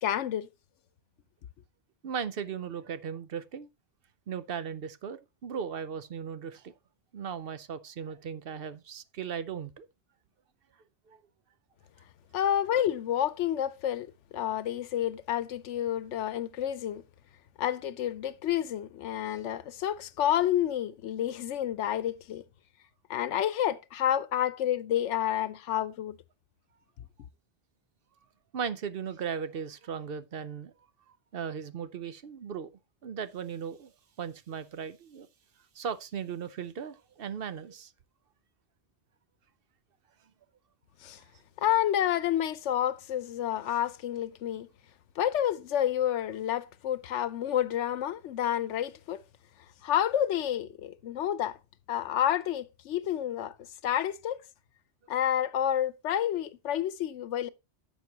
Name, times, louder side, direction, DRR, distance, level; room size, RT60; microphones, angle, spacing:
voice 1, 0.0-0.5 12.3-17.0 17.6-22.4 23.1-26.2 41.0-41.2 41.6-44.7 45.2-49.2 49.8-51.6 51.9-53.5 53.8-54.4 55.1-57.5, left 11 dB, 90° left, 1.0 m, -29 dB
voice 2, 2.0-3.7 4.3-6.7 7.1-9.9 11.1-11.2 28.5-30.7 31.3-32.7 33.0-33.9 34.2-35.3 35.7-37.9, right 7 dB, 60° right, 0.8 m, -37 dB
10.5 x 7.2 x 2.8 m
omnidirectional pair, 1.2 m